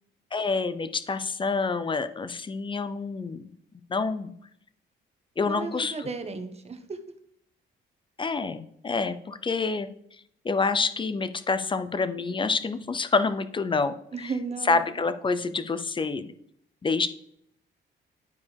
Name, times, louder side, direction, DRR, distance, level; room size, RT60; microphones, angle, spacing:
voice 1, 0.3-3.4 3.9-4.3 5.4-6.1 8.2-9.9 10.4-14.3 14.7-16.3 16.8-17.1, left 4 dB, 25° left, 11 dB, 0.6 m, -27 dB
voice 2, 5.5-7.0 14.1-14.8, right 4 dB, 30° right, 8 dB, 1.0 m, -34 dB
10.5 x 4.8 x 3.4 m, 0.71 s
cardioid pair, 90°, 20 cm